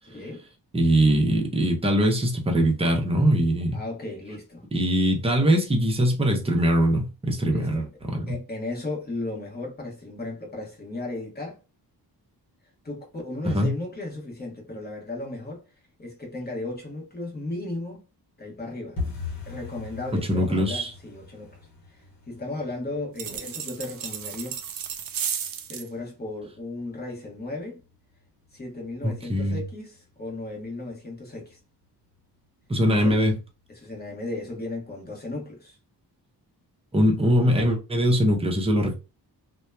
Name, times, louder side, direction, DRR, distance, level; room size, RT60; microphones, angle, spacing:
voice 1, 0.1-0.5 3.7-4.6 7.5-7.9 8.3-11.6 12.8-15.6 16.0-18.0 18.4-19.0 19.5-21.6 21.9-22.0 22.3-24.6 25.7-27.8 28.5-31.6 32.9-33.2 33.7-35.8, left 2 dB, 25° left, 1.0 m, -35 dB
voice 2, 0.7-3.8 4.7-8.3 13.5-13.7 20.1-20.9 29.0-29.6 32.7-33.4 36.9-38.9, equal, 15° right, 0.6 m, -22 dB
sound 1, 19.0-29.7 29.9-30.6 30.9-31.2 31.4-31.8 32.1-32.2 32.7-33.3 33.6-33.7 34.2-34.3, left 4 dB, 55° left, 1.0 m, -42 dB
sound 2, 23.2-25.9, right 8 dB, 55° right, 0.5 m, -33 dB
2.7 x 2.2 x 2.2 m
wide cardioid pair, 95°, 41 cm